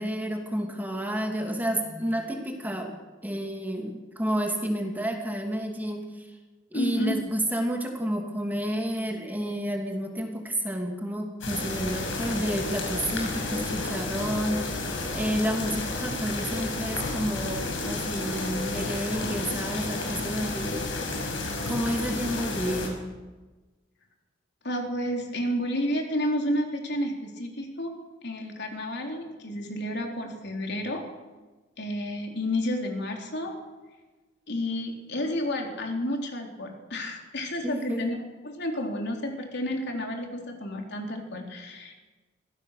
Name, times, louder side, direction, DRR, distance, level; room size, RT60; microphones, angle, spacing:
voice 1, 0.0-6.3 6.7-14.7 15.1-20.8 21.6-23.0 37.6-38.0, equal, 10° right, 2 dB, 2.8 m, -30 dB
voice 2, 6.7-7.1 24.6-27.9 28.2-31.0 31.8-33.6 34.5-41.9, left 1 dB, 60° left, 2 dB, 3.8 m, -31 dB
sound 1, 11.4-22.9, left 2 dB, 80° left, 5.7 m, -31 dB
24.5 x 16.5 x 6.7 m, 1.2 s
head